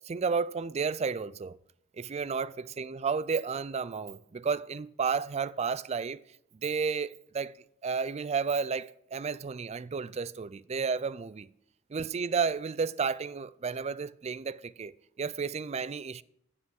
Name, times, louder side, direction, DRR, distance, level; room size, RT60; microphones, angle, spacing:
voice 1, 0.1-1.6 2.0-6.2 6.6-7.5 7.8-11.5 11.9-14.9 15.2-16.2, right 5 dB, 30° right, 0.4 m, -32 dB
15.0 x 5.6 x 6.5 m
head